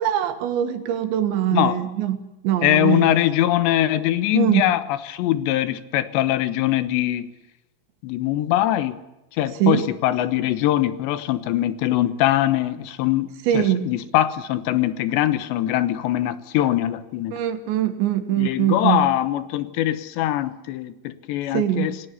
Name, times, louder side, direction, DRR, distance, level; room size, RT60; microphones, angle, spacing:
voice 1, 0.0-2.2 2.4-3.1 4.3-4.6 9.6-9.9 13.5-13.9 17.3-19.1 21.5-21.9, right 11 dB, 85° right, 8 dB, 4.0 m, -22 dB
voice 2, 2.6-7.3 8.0-9.0 9.4-17.3 18.4-22.1, left 13 dB, 85° left, 13 dB, 3.3 m, -22 dB
28.0 x 19.0 x 8.4 m, 0.95 s
omnidirectional pair, 5.0 m